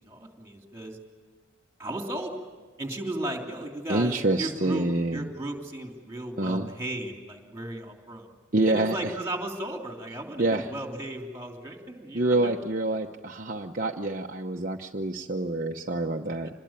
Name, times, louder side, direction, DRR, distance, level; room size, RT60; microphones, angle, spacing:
voice 1, 0.1-1.0 1.8-2.5 2.8-8.3 8.7-12.5, right 1 dB, 15° right, 2 dB, 3.0 m, -35 dB
voice 2, 3.9-5.3 6.4-6.7 8.5-9.1 10.4-10.7 12.1-16.5, right 2 dB, 40° right, 1 dB, 0.9 m, -27 dB
27.0 x 21.0 x 8.9 m, 1.4 s
head